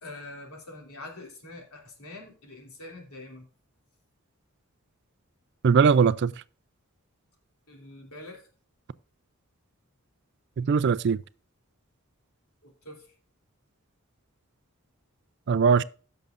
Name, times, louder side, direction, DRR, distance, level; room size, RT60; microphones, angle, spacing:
voice 1, 0.0-3.5 7.7-8.5 12.6-13.1, left 2 dB, 90° left, 2.8 m, -44 dB
voice 2, 5.6-6.3 10.6-11.2 15.5-15.8, right 6 dB, 50° right, 0.3 m, -20 dB
16.0 x 6.6 x 2.5 m
head